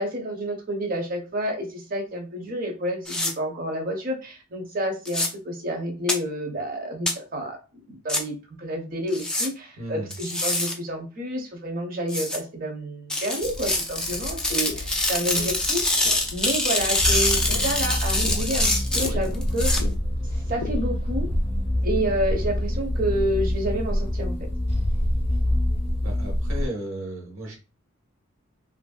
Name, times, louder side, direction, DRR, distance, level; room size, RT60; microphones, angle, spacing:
voice 1, 0.0-7.6 7.9-15.8 16.3-19.7 20.5-21.3 21.8-24.4, equal, 45° right, 3 dB, 0.7 m, -29 dB
sound 1, 3.1-3.3 5.0-5.3 6.1-6.2 7.1-7.2 8.1-8.2 9.1-9.5 10.1-10.7 12.1-12.4 13.1-19.8, left 1 dB, 5° left, 0.4 m, -25 dB
voice 2, 9.8-10.1 25.9-27.6, right 1 dB, 75° right, 1 dB, 1.1 m, -34 dB
sound 2, 13.4-21.1, left 3 dB, 75° left, 0.4 m, -38 dB
sound 3, 17.0-26.7, left 1 dB, 30° left, 0.7 m, -26 dB
3.0 x 2.6 x 2.3 m, 0.32 s
head